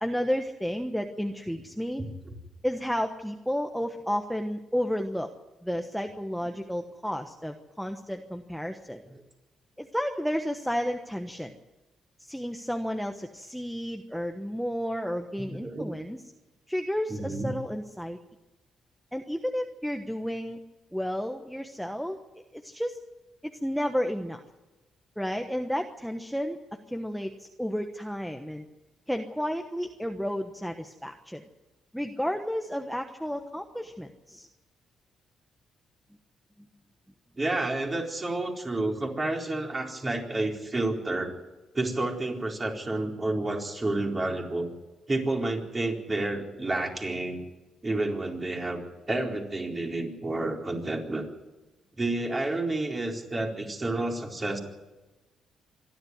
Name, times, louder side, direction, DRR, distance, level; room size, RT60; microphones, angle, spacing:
voice 1, 0.0-2.0 2.6-5.3 5.6-9.0 9.8-11.6 12.2-16.2 16.7-18.2 19.1-20.6 20.9-22.2 22.5-23.0 23.4-24.4 25.2-28.7 29.1-31.4 31.9-34.5, equal, ahead, 5 dB, 1.2 m, -32 dB
voice 2, 15.4-15.9 17.1-17.5 37.4-41.3 41.7-44.7 45.1-47.4 47.8-51.2 52.0-54.6, right 2 dB, 25° right, 1 dB, 4.2 m, -30 dB
25.5 x 11.5 x 9.5 m, 1.1 s
cardioid pair, 90°, 0 cm